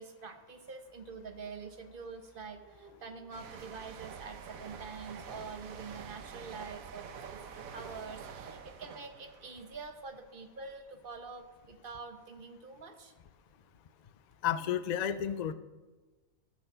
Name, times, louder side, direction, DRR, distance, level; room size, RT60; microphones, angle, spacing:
voice 1, 0.0-13.1, right 4 dB, 40° right, 6 dB, 1.1 m, -46 dB
sound 1, 3.3-10.8 11.1-11.4, right 6 dB, 75° right, 1.3 m, -47 dB
voice 2, 14.4-15.5, left 9 dB, 85° left, 13 dB, 0.3 m, -31 dB
14.0 x 6.3 x 6.8 m, 1.2 s
omnidirectional pair, 1.5 m